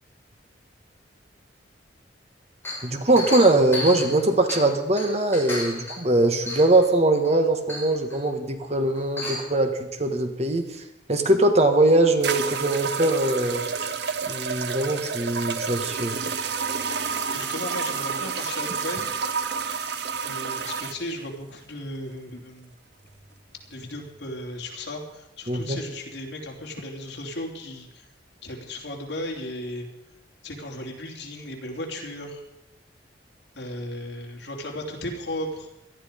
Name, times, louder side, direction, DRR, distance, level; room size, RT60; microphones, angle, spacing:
Chink clink, 2.6-4.7 5.0-6.0 6.5-6.8 7.2-7.3 7.7-8.2 9.0-9.5, left 1 dB, 15° left, 6.5 m, -33 dB
voice 1, 2.8-10.7 11.1-13.6 14.3-16.2 25.5-25.8, right 2 dB, 35° right, 6 dB, 1.6 m, -21 dB
sound 1, 11.4-11.5 12.2-21.0, right 6 dB, 65° right, 1.0 m, -29 dB
voice 2, 17.3-19.1 20.2-22.7 23.7-28.1 28.4-29.9 30.4-32.4 33.5-35.7, left 1 dB, 70° left, 1 dB, 3.2 m, -35 dB
18.0 x 12.5 x 5.2 m, 0.92 s
head